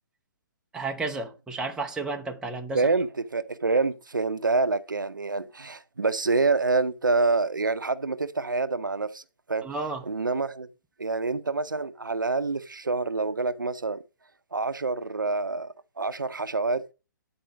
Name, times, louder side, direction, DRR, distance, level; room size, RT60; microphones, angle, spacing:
voice 1, 0.7-2.8 9.6-10.0, right 3 dB, 5° right, 0.7 m, -32 dB
voice 2, 2.7-9.2 9.5-9.7 10.0-10.7 11.0-14.0 14.5-16.8, right 3 dB, 75° right, 0.6 m, -27 dB
9.2 x 4.3 x 4.9 m
figure-of-eight pair, 125°, 11 cm